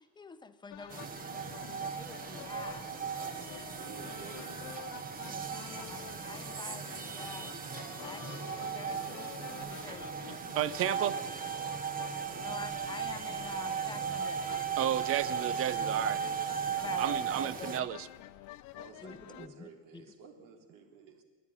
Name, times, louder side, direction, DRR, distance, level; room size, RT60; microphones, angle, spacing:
voice 1, 0.0-1.4 2.0-3.0 5.2-7.5 8.0-10.6 11.0-11.1 12.4-14.5 16.8-17.9 19.0-20.0, left 4 dB, 15° left, 11 dB, 0.8 m, -48 dB
sound 1, 0.7-19.5, left 15 dB, 65° left, 0.9 m, -49 dB
voice 2, 0.8-1.2 3.7-4.6 16.6-16.8 18.7-21.2, right 5 dB, 75° right, 3 dB, 3.7 m, -52 dB
sound 2, 0.9-17.8, right 7 dB, 25° right, 1.0 m, -37 dB
voice 3, 10.3-11.1 14.8-16.2 17.0-18.1, right 12 dB, 45° right, 18 dB, 0.7 m, -32 dB
28.0 x 11.0 x 9.5 m, 1.5 s
cardioid pair, 165°, 32 cm